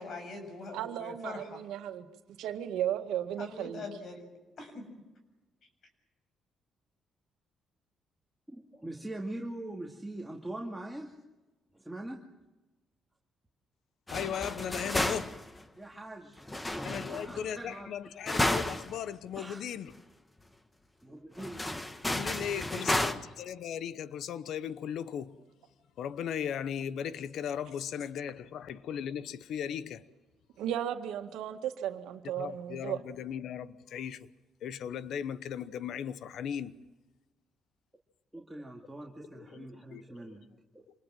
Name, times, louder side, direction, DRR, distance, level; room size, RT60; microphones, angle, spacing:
voice 1, 0.0-1.4 3.4-4.3 4.6-4.8, left 3 dB, 60° left, 7.4 m, -42 dB
voice 2, 0.7-2.1 2.4-3.8 30.6-33.0, right 11 dB, 90° right, 1.8 m, -35 dB
voice 3, 8.5-11.2 11.7-12.3 15.8-17.9 19.4-19.6 21.0-21.9 22.4-23.2 38.3-40.5, right 1 dB, 5° right, 2.4 m, -43 dB
voice 4, 14.1-15.4 16.8-19.9 22.1-25.4 26.0-30.1 32.3-34.3 34.6-36.8 39.3-40.0, left 9 dB, 75° left, 1.0 m, -37 dB
sound 1, 14.1-15.6 16.5-17.5 18.3-19.0 19.3-19.4 19.9-20.0 21.4-23.1, left 1 dB, 15° left, 1.6 m, -32 dB
27.0 x 20.5 x 7.7 m
cardioid pair, 90°, 0 cm